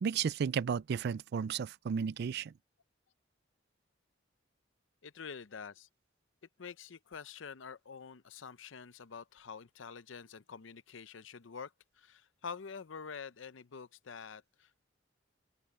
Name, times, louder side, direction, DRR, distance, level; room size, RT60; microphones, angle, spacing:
voice 1, 0.0-2.5, right 7 dB, 60° right, 0.3 m, -33 dB
voice 2, 5.0-5.9 6.6-14.8, left 6 dB, 90° left, 0.7 m, -47 dB
open air
head